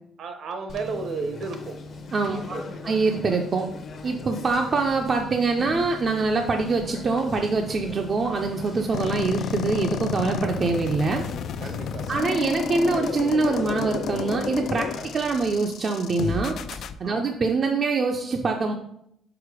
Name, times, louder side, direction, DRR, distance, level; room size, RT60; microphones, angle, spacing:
voice 1, 0.2-1.8 2.3-2.6 11.6-12.2 17.0-17.3, right 4 dB, 60° right, 6 dB, 0.9 m, -33 dB
Conversation, 0.7-15.5, left 3 dB, 45° left, 0.8 m, -39 dB
voice 2, 2.1-2.6 2.8-3.7 4.0-11.2 12.1-14.9 15.1-18.7, right 4 dB, 35° right, 3 dB, 0.5 m, -24 dB
sound 1, 8.9-16.9, left 7 dB, 60° left, 0.3 m, -31 dB
4.9 x 4.5 x 4.8 m, 0.74 s
cardioid pair, 125°, 0 cm